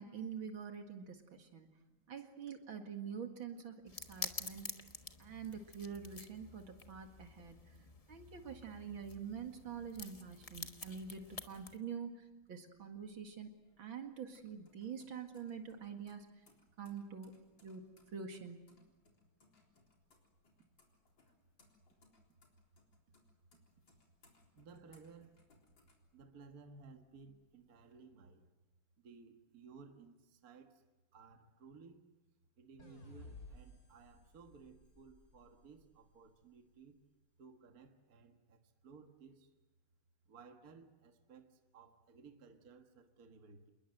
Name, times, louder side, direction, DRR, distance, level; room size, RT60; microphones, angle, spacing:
voice 1, 0.0-1.7 2.1-4.7 5.2-7.7 8.1-13.5 13.8-16.3 16.8-17.3 17.6-17.9 18.1-18.7, right 7 dB, 70° right, 2.7 m, -46 dB
voice 2, 1.7-2.0 6.5-6.6 6.9-8.0 9.9-10.1 13.1-13.2 14.7-14.8 17.8-17.9 23.8-23.9 24.5-25.5 26.1-28.5 29.0-30.8 31.1-32.1 32.6-37.0 37.4-39.5 40.3-43.7, right 5 dB, 45° right, 1.9 m, -59 dB
sound 1, 3.9-11.8, left 3 dB, 25° left, 1.0 m, -49 dB
sound 2, 12.9-26.7 27.1-27.9, left 3 dB, 60° left, 4.6 m, -71 dB
sound 3, 32.8-36.0, left 2 dB, 45° left, 3.3 m, -56 dB
27.5 x 21.0 x 7.8 m
omnidirectional pair, 2.3 m